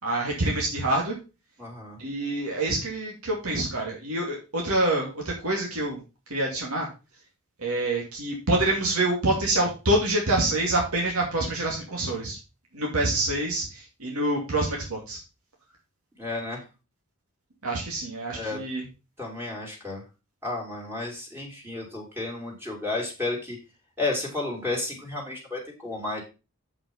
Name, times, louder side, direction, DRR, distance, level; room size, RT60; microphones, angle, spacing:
voice 1, 0.0-1.2 2.0-6.0 6.3-6.9 7.6-12.4 12.7-15.2 17.6-18.8, right 1 dB, 85° right, -1 dB, 2.5 m, -26 dB
voice 2, 1.6-2.0 16.2-16.6 18.3-18.6 19.2-20.0 20.4-23.6 24.0-26.2, left 2 dB, 10° right, -1 dB, 3.0 m, -32 dB
7.6 x 5.6 x 5.3 m, 0.30 s
head